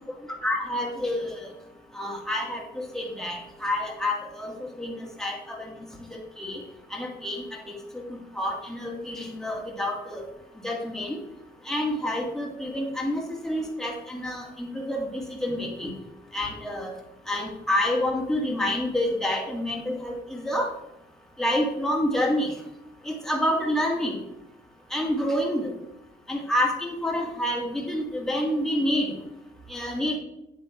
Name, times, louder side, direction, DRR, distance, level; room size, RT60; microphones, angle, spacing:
voice 1, 0.4-1.4 1.9-5.8 6.1-6.6 6.9-7.6 8.3-10.2 10.6-11.2 11.7-15.9 16.3-16.9 17.3-20.7 21.4-22.5 23.1-24.2 24.9-25.7 26.3-29.1 29.7-30.2, left 1 dB, ahead, -1 dB, 2.2 m, -28 dB
9.5 x 8.3 x 3.4 m, 0.87 s
wide cardioid pair, 145°, 19 cm